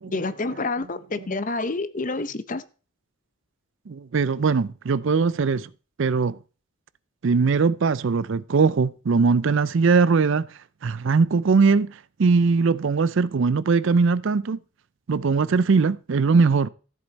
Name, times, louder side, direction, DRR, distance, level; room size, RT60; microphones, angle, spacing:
voice 1, 0.1-2.6, left 3 dB, 35° left, 0.7 m, -28 dB
voice 2, 3.9-5.7 6.0-6.4 7.2-10.5 10.8-14.6 15.1-16.7, right 4 dB, 55° right, 0.4 m, -20 dB
14.0 x 7.8 x 4.1 m
head